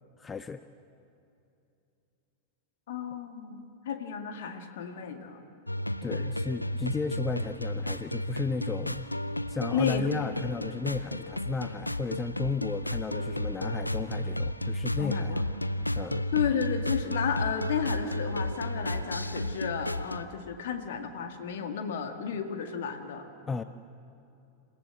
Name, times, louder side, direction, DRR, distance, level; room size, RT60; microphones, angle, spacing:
voice 1, 0.2-0.6 6.0-9.1 9.5-15.4 15.9-16.2 23.5-23.6, left 4 dB, 15° left, 11 dB, 0.6 m, -34 dB
voice 2, 2.9-5.4 6.1-6.2 9.7-10.1 15.0-15.4 16.3-23.2, left 7 dB, 60° left, 6 dB, 1.9 m, -32 dB
sound 1, 5.7-20.2, left 1 dB, 85° left, 0.5 m, -33 dB
27.5 x 15.5 x 7.8 m, 2.6 s
figure-of-eight pair, 90°, 0 cm